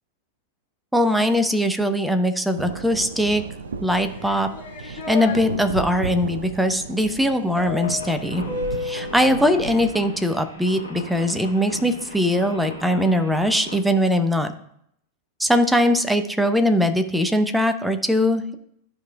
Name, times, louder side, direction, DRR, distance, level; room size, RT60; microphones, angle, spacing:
voice 1, 0.9-3.4 3.8-4.5 4.8-8.4 8.8-14.5 15.4-18.6, equal, 5° right, 8 dB, 0.7 m, -21 dB
sound 1, 2.6-9.9, right 5 dB, 70° right, 0.4 m, -34 dB
sound 2, 4.1-5.4 7.6-9.2, left 5 dB, 45° left, 1.9 m, -31 dB
sound 3, 7.8-13.8, left 1 dB, 90° left, 1.8 m, -38 dB
13.0 x 5.0 x 2.3 m, 0.71 s
figure-of-eight pair, 90°, 0 cm